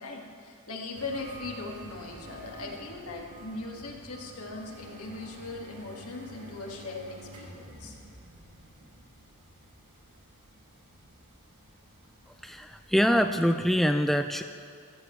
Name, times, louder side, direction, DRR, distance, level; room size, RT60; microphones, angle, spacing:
voice 1, 0.0-8.0, left 3 dB, 80° left, 0 dB, 1.9 m, -39 dB
sound 1, 0.9-13.8, right 1 dB, 85° right, 2.4 m, -49 dB
voice 2, 12.4-14.4, equal, ahead, 7 dB, 0.3 m, -24 dB
16.5 x 15.5 x 3.2 m, 2.4 s
head